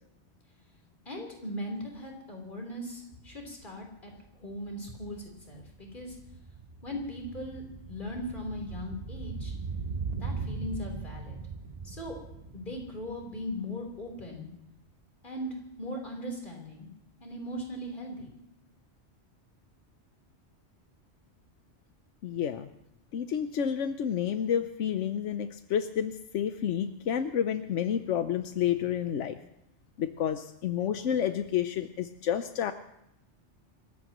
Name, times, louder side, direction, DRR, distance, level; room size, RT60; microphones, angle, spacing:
voice 1, 1.1-4.1 4.4-6.2 6.8-9.5 10.1-11.4 11.8-12.2 12.5-14.5 15.2-16.9 17.2-18.3, left 1 dB, 45° left, 0 dB, 4.1 m, -39 dB
sound 1, 3.6-3.7 3.9-14.3 14.5-14.6, right 4 dB, 35° right, 0.9 m, -40 dB
voice 2, 22.2-22.7 23.1-29.4 30.0-32.7, left 9 dB, 90° left, 9 dB, 1.1 m, -30 dB
29.0 x 15.0 x 3.1 m, 0.82 s
omnidirectional pair, 1.2 m